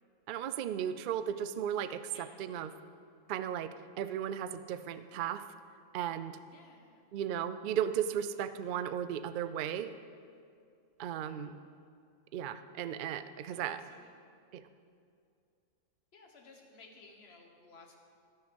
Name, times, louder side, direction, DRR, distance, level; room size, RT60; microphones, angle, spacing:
voice 1, 0.3-2.7 3.3-5.4 5.9-6.4 7.1-9.9 11.0-11.6 12.3-13.8 14.5-14.6, right 9 dB, 85° right, 12 dB, 0.4 m, -35 dB
voice 2, 6.5-7.0 11.2-11.4 13.5-14.1 16.1-18.0, left 3 dB, 50° left, 2 dB, 1.5 m, -57 dB
16.0 x 6.5 x 5.2 m, 2.4 s
omnidirectional pair, 1.4 m